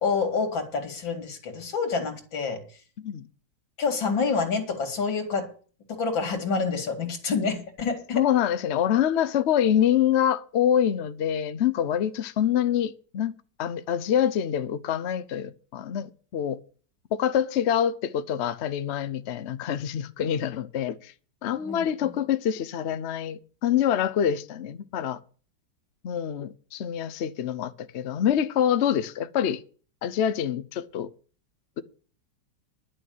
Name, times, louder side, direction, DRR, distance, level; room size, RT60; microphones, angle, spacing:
voice 1, 0.0-2.6 3.8-5.5 5.9-8.2 21.6-22.1, left 5 dB, 90° left, 2.9 m, -28 dB
voice 2, 8.1-13.3 13.6-16.6 17.1-21.1 21.4-25.2 26.0-29.6 30.0-31.1, left 9 dB, 60° left, 0.7 m, -26 dB
11.0 x 6.4 x 9.2 m
omnidirectional pair, 2.0 m